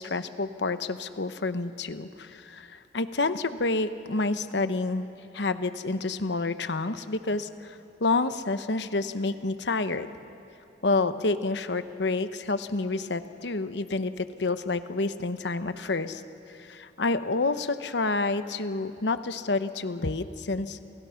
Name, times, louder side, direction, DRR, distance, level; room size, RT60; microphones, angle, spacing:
voice 1, 0.0-5.1 5.3-10.1 10.8-16.2 16.5-20.8, left 3 dB, 70° left, 11 dB, 1.0 m, -29 dB
30.0 x 28.5 x 5.8 m, 2.7 s
head